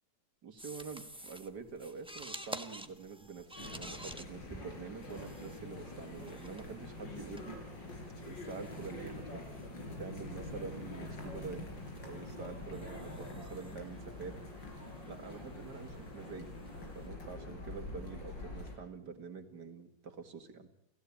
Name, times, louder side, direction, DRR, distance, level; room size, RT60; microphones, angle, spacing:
voice 1, 0.4-7.6 8.3-9.7 10.0-11.7 12.0-14.4 15.0-16.5 16.9-20.7, right 5 dB, 65° right, 7 dB, 2.7 m, -46 dB
sound 1, 0.6-17.1, right 1 dB, 5° right, 0.9 m, -52 dB
sound 2, 3.6-18.8, left 2 dB, 80° left, 5.3 m, -45 dB
29.5 x 16.5 x 8.4 m, 0.74 s
omnidirectional pair, 1.9 m